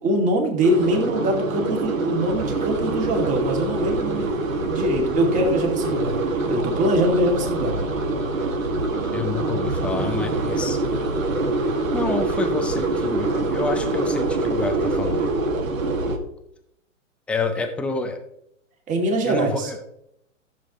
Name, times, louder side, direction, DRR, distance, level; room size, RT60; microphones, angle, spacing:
voice 1, 0.0-4.3 4.7-6.1 6.5-7.7 18.9-19.7, right 1 dB, 20° right, 1 dB, 2.4 m, -22 dB
sound 1, 0.6-16.2, right 2 dB, 85° right, 2.2 m, -25 dB
voice 2, 9.1-10.8 11.9-15.3 17.3-18.2 19.2-19.8, left 3 dB, 5° left, 5 dB, 0.5 m, -28 dB
15.0 x 7.4 x 3.1 m, 0.77 s
hypercardioid pair, 135°, 39 cm